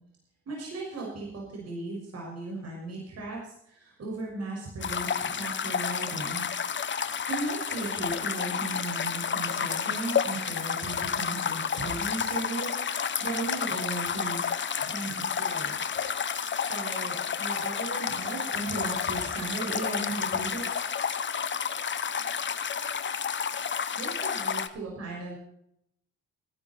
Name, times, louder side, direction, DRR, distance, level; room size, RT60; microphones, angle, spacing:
voice 1, 0.5-6.5 7.0-14.4 14.8-15.8 16.5-20.7 23.9-25.4, right 2 dB, 55° right, -3 dB, 6.3 m, -36 dB
sound 1, 4.8-24.7, left 7 dB, 40° left, 1.1 m, -30 dB
15.5 x 12.0 x 4.5 m, 0.75 s
cardioid pair, 90°, 30 cm